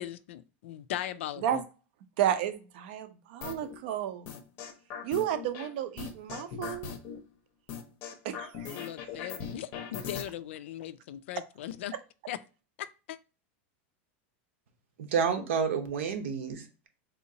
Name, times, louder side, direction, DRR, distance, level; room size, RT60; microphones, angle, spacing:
voice 1, 0.0-1.6 8.7-11.9 12.3-12.4 12.8-13.2, left 12 dB, 75° left, 0.4 m, -39 dB
voice 2, 2.2-4.3 5.0-6.9 8.2-8.9, right 10 dB, 55° right, 0.5 m, -32 dB
sound 1, 3.4-3.7 4.3-5.7 6.0-7.2 7.7-10.2, left 7 dB, 35° left, 0.6 m, -39 dB
voice 3, 15.0-16.9, right 6 dB, 85° right, 0.9 m, -30 dB
3.7 x 2.8 x 2.7 m
supercardioid pair, 175°, 7 cm